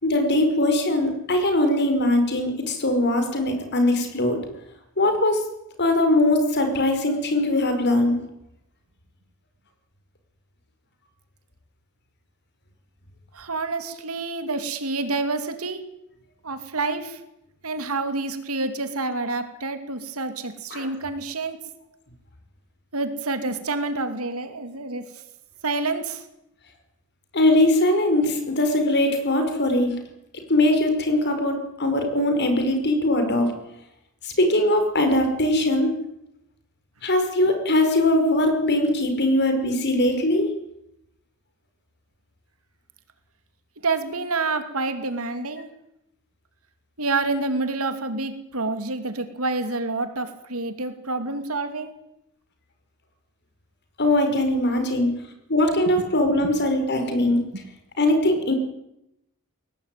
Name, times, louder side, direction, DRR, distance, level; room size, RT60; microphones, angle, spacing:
voice 1, 0.0-4.5 5.0-5.4 5.8-8.2 20.7-20.9 27.3-30.0 30.5-33.5 34.2-35.9 37.0-40.5 54.0-55.1 55.5-57.5 58.0-58.5, left 1 dB, 50° left, 6 dB, 5.4 m, -21 dB
voice 2, 13.3-15.8 16.4-17.2 17.6-21.6 22.9-25.0 25.6-26.2 43.8-45.7 47.0-51.9 56.0-56.1 56.4-56.5 57.5-57.6, right 3 dB, 80° right, 9 dB, 2.9 m, -28 dB
22.0 x 18.0 x 9.3 m, 0.84 s
head